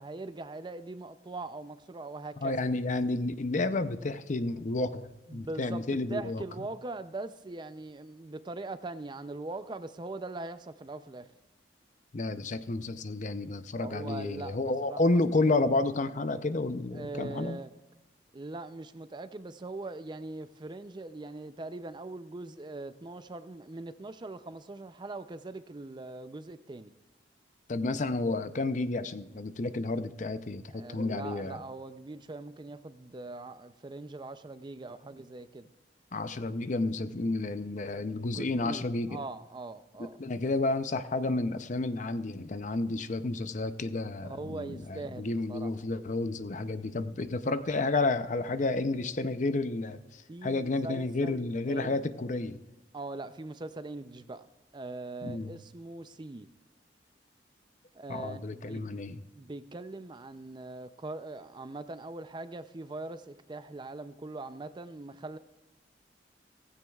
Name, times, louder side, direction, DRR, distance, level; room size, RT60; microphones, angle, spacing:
voice 1, 0.0-2.6 5.3-11.3 13.8-15.2 16.9-17.7 18.3-26.9 30.7-35.7 38.3-40.2 44.0-45.7 50.3-52.0 52.9-54.5 54.7-56.5 57.9-58.8 59.4-65.4, right 2 dB, 25° right, 0.5 m, -41 dB
voice 2, 2.4-6.4 12.1-17.6 27.7-31.6 36.1-39.2 40.2-52.6 55.2-55.6 58.1-59.2, left 2 dB, 45° left, 0.6 m, -31 dB
16.5 x 15.5 x 2.4 m
head